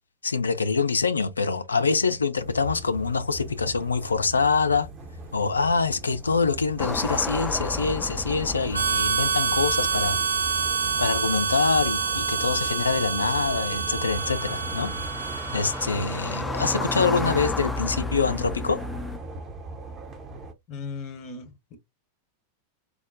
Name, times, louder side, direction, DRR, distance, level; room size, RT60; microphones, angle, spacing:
voice 1, 0.2-4.9 5.3-10.2 11.0-14.9 15.5-18.8, left 4 dB, 75° left, 0.5 m, -25 dB
sound 1, 2.3-20.5, right 2 dB, 30° right, 0.8 m, -39 dB
sound 2, 6.8-19.2, left 2 dB, 10° left, 0.5 m, -34 dB
Harmonica, 8.7-16.0, right 6 dB, 80° right, 0.3 m, -27 dB
voice 2, 20.7-21.8, left 4 dB, 35° left, 0.9 m, -37 dB
4.7 x 2.0 x 2.6 m
figure-of-eight pair, 90°, 0 cm